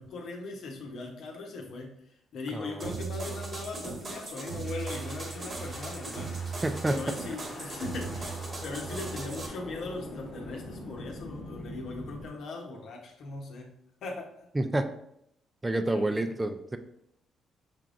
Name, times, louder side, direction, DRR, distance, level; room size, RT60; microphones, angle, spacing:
voice 1, 0.0-2.0 2.3-6.4 6.9-14.3 15.9-16.3, left 3 dB, 75° left, 1 dB, 1.0 m, -39 dB
voice 2, 2.5-3.0 6.6-7.0 14.5-14.9 15.6-16.8, right 1 dB, 15° right, 8 dB, 0.5 m, -29 dB
sound 1, 2.8-9.5, right 3 dB, 40° right, 1.1 m, -37 dB
sound 2, 4.6-12.3, left 1 dB, 45° left, 1.0 m, -44 dB
5.9 x 3.5 x 2.5 m, 0.75 s
cardioid pair, 90°, 0 cm